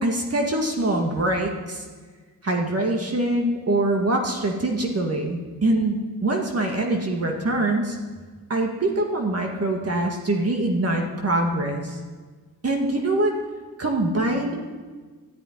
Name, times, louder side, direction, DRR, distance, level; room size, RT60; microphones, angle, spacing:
voice 1, 0.0-1.8 2.4-8.0 8.5-12.0 12.6-13.4 13.8-14.5, right 1 dB, 45° right, 1 dB, 1.8 m, -24 dB
13.5 x 9.6 x 10.0 m, 1.4 s
wide cardioid pair, 170°, 35 cm